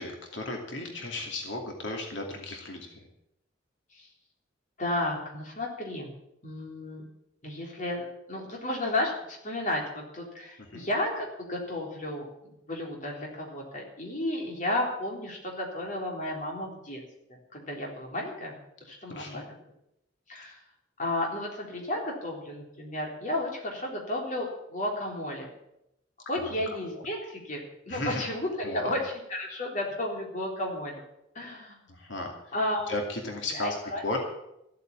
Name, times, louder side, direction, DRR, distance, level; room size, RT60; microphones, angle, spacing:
voice 1, 0.0-3.1 10.6-10.9 19.1-19.5 26.4-26.8 27.9-28.2 28.6-29.0 31.9-32.5 32.9-34.2, left 2 dB, 90° left, 1 dB, 2.6 m, -35 dB
voice 2, 4.8-6.1 6.4-7.0 7.4-17.0 17.5-18.6 18.9-19.5 20.3-20.6 21.0-25.5 26.3-29.0 29.3-31.0 31.4-31.8 32.5-32.9 33.5-34.0, left 1 dB, 45° left, -1 dB, 3.7 m, -33 dB
15.0 x 8.4 x 8.7 m, 0.84 s
head